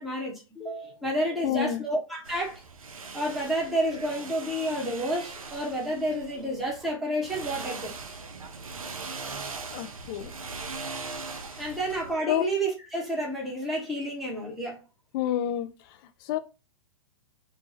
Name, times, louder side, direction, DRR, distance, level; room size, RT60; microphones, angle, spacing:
voice 1, 0.0-2.6 3.1-7.9 11.6-14.8, right 1 dB, ahead, 0.8 m, -30 dB
voice 2, 1.4-1.8 9.7-10.3 11.5-11.7 12.3-12.4 15.1-16.4, left 11 dB, 40° left, 0.4 m, -29 dB
sound 1, 2.3-6.9 7.2-12.2, right 4 dB, 85° right, 0.5 m, -40 dB
2.7 x 2.2 x 2.9 m
figure-of-eight pair, 105°, 17 cm